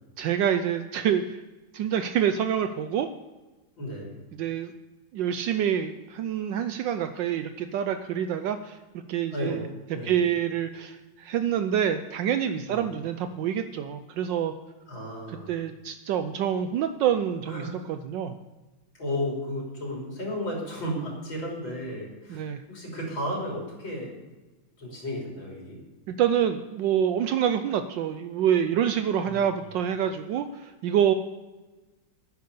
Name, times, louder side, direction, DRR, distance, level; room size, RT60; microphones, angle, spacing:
voice 1, 0.2-1.4 1.7-3.1 4.4-4.7 5.1-8.8 9.1-9.7 10.0-14.5 15.3-17.7 18.1-18.4 22.3-22.6 26.1-31.1, right 9 dB, 75° right, 9 dB, 1.2 m, -26 dB
voice 2, 3.8-4.1 9.3-9.7 9.9-10.1 12.7-12.9 14.9-15.5 17.5-17.7 18.9-24.2 24.8-25.8 29.2-29.6, left 1 dB, 75° left, -2 dB, 4.0 m, -33 dB
10.5 x 9.5 x 6.8 m, 1.2 s
omnidirectional pair, 2.2 m